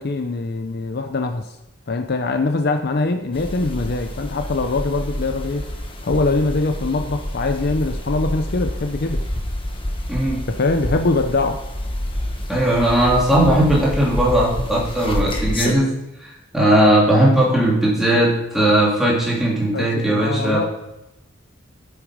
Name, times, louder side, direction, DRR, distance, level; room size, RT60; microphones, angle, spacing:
voice 1, 0.0-1.6 1.9-5.7 6.0-9.2 10.5-11.6 19.7-20.7, left 3 dB, 50° left, 6 dB, 0.6 m, -22 dB
sound 1, 3.3-15.7, left 1 dB, 25° left, 1.2 m, -28 dB
voice 2, 10.1-10.4 12.5-15.9 16.2-20.6, right 1 dB, ahead, -5 dB, 2.8 m, -18 dB
9.0 x 8.2 x 4.9 m, 0.90 s
head